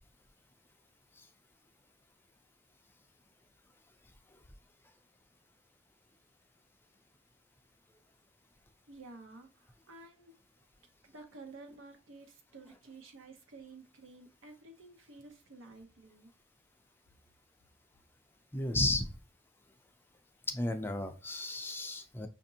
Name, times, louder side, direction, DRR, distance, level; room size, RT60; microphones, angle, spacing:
voice 1, 8.9-10.4 11.0-16.3, right 3 dB, 80° right, 0.8 m, -52 dB
voice 2, 18.5-19.1 20.5-22.3, left 2 dB, 10° left, 0.4 m, -33 dB
5.7 x 2.5 x 2.7 m
head